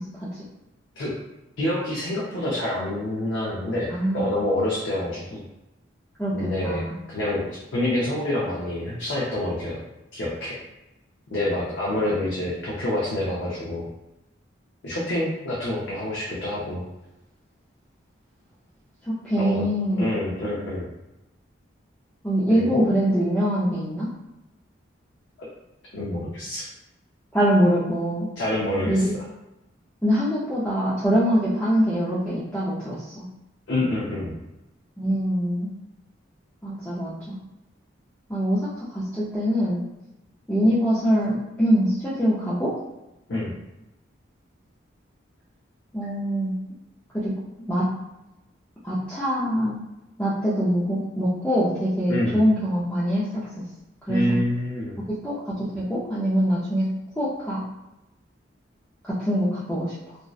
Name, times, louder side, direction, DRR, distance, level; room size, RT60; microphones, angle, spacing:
voice 1, 1.6-5.4 6.3-6.8 7.1-9.8 10.1-10.6 11.3-13.9 14.8-16.9 19.4-19.7 20.0-20.9 22.5-22.8 25.4-25.5 25.9-26.6 28.4-29.1 33.7-34.4 43.3-43.5 52.1-52.4 54.1-55.0, left 1 dB, 70° left, -6 dB, 0.5 m, -27 dB
voice 2, 3.9-4.5 6.2-6.3 6.6-6.9 19.0-20.1 22.2-24.1 27.3-28.3 28.8-29.1 30.0-33.3 35.0-35.7 36.6-37.4 38.3-39.8 40.5-42.7 45.9-46.5 47.1-47.3 47.7-47.9 48.8-49.8 50.2-53.5 54.1-54.4 55.2-56.9 57.2-57.6 59.0-60.2, equal, 5° left, -10 dB, 0.3 m, -23 dB
2.6 x 2.0 x 2.3 m, 0.95 s
head